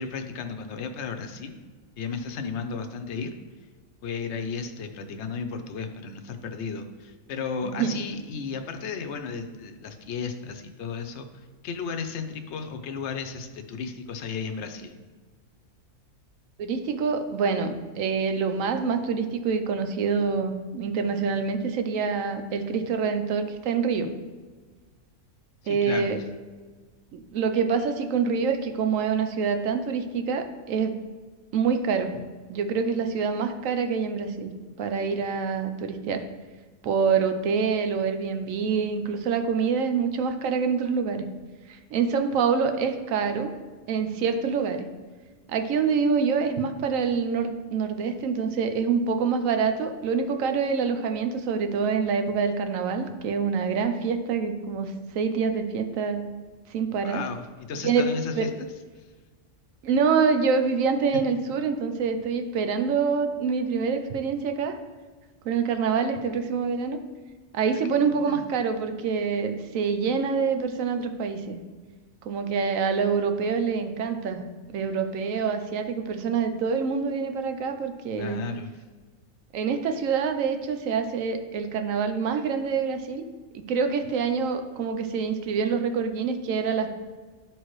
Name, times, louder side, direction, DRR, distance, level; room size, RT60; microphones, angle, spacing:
voice 1, 0.0-1.6 2.0-3.3 4.0-15.0 25.6-26.2 57.0-58.5 59.0-59.1 68.2-68.4 78.2-78.8, left 5 dB, 60° left, 6 dB, 0.9 m, -34 dB
voice 2, 7.6-8.0 16.6-24.1 25.7-26.2 27.1-31.0 31.5-32.1 32.5-34.5 34.8-36.2 36.8-41.3 41.7-43.5 43.9-44.9 45.5-56.3 56.7-57.2 57.8-58.1 58.4-58.5 59.8-64.8 65.4-67.0 67.5-71.6 72.2-74.5 74.7-78.4 79.5-83.2 83.5-86.9, right 5 dB, 75° right, 7 dB, 1.0 m, -26 dB
11.5 x 4.5 x 3.1 m, 1.4 s
omnidirectional pair, 1.4 m